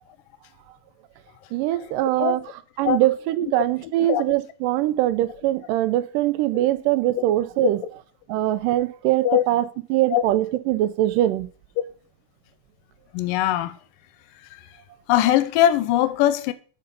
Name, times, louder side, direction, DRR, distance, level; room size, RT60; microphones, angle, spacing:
voice 1, 1.5-2.4 2.8-7.8 8.3-9.6 9.9-11.5, right 14 dB, 85° right, 2.2 m, -22 dB
voice 2, 3.8-4.2 7.6-7.7 9.2-9.4 10.1-10.2 13.1-13.8 15.1-16.5, left 12 dB, 85° left, 2.3 m, -21 dB
6.7 x 5.2 x 5.4 m
omnidirectional pair, 3.8 m